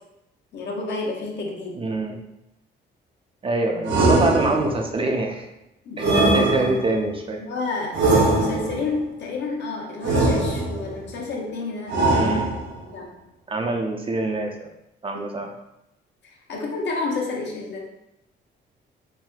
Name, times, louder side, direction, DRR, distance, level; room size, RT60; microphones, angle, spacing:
voice 1, 0.5-1.8 5.8-6.7 7.4-12.3 12.9-13.1 15.1-15.2 16.2-17.8, left 3 dB, 60° left, -1 dB, 0.7 m, -30 dB
voice 2, 1.8-2.2 3.4-5.5 6.0-7.4 12.1-12.5 13.5-14.5 15.0-15.5, right 2 dB, 30° right, 3 dB, 0.4 m, -25 dB
sound 1, 3.9-4.9 6.0-7.0 7.9-8.9 10.0-10.9 11.9-12.8, right 2 dB, 70° right, 0.7 m, -21 dB
3.2 x 2.5 x 2.3 m, 0.86 s
cardioid pair, 90°, 20 cm